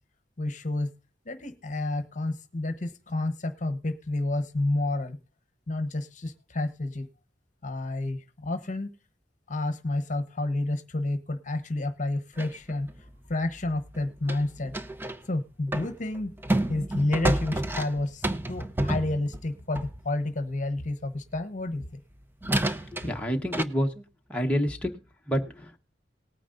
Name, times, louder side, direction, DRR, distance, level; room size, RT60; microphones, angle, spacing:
voice 1, 0.4-0.9 1.2-5.2 5.7-7.1 7.6-8.9 9.5-14.7 15.3-16.3 16.7-22.0 23.3-23.4, left 2 dB, 40° left, 10 dB, 1.0 m, -30 dB
sound 1, 12.4-15.2 15.7-20.1 21.8-21.9 22.4-23.6, right 1 dB, 10° right, 0.6 m, -30 dB
voice 2, 23.0-24.0 24.3-24.9 25.3-25.8, equal, 5° left, 1 dB, 1.1 m, -28 dB
19.0 x 9.4 x 2.5 m, 0.31 s
head